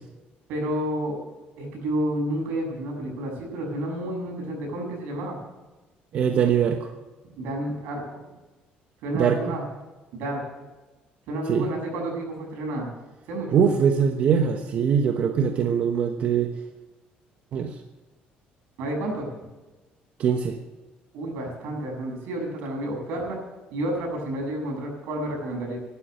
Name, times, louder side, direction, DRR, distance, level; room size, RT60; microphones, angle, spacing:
voice 1, 0.5-1.2 1.6-5.4 7.4-8.0 9.0-9.6 10.1-10.4 11.3-12.9 13.3-13.6 18.8-19.3 21.1-23.4 23.7-25.8, right 1 dB, 85° right, 1 dB, 7.2 m, -30 dB
voice 2, 6.1-6.9 9.1-9.6 11.5-11.7 13.5-16.5 17.5-17.7 20.2-20.6, right 7 dB, 45° right, 5 dB, 1.1 m, -22 dB
15.5 x 12.0 x 6.6 m, 1.2 s
cardioid pair, 165°, 3 cm